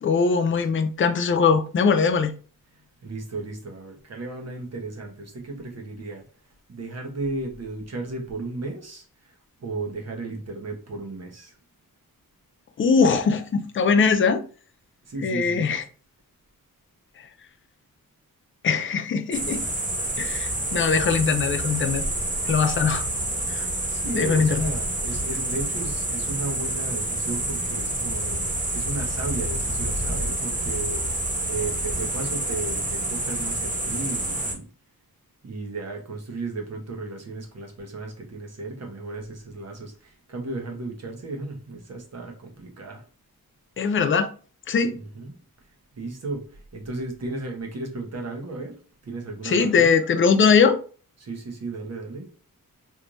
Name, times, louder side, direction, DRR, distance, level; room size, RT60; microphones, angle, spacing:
voice 1, 0.0-2.3 12.8-14.4 15.2-15.8 17.2-17.3 18.6-19.7 20.2-22.0 22.4-23.1 23.5-23.7 24.1-24.7 43.8-44.3 44.7-45.0 49.4-50.8, left 5 dB, 35° left, 0.4 m, -21 dB
voice 2, 2.7-6.2 6.7-11.6 15.0-15.7 23.8-34.7 35.4-43.1 44.9-45.3 45.6-49.9 51.2-52.3, right 3 dB, 45° right, 1.1 m, -35 dB
sound 1, 19.3-34.5, right 1 dB, 20° right, 0.9 m, -28 dB
3.4 x 3.1 x 2.6 m
wide cardioid pair, 125°, 35 cm